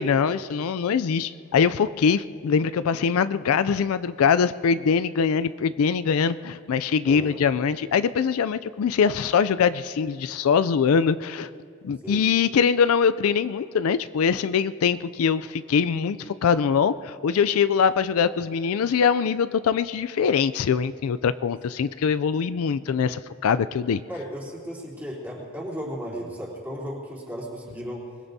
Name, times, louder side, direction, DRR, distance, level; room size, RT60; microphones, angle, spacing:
voice 1, 0.0-11.5 11.8-24.0, left 6 dB, 75° left, 14 dB, 0.4 m, -23 dB
voice 2, 7.0-7.4 12.0-12.2 23.8-28.1, equal, 10° right, -5 dB, 3.4 m, -35 dB
24.5 x 21.0 x 2.7 m, 2.3 s
head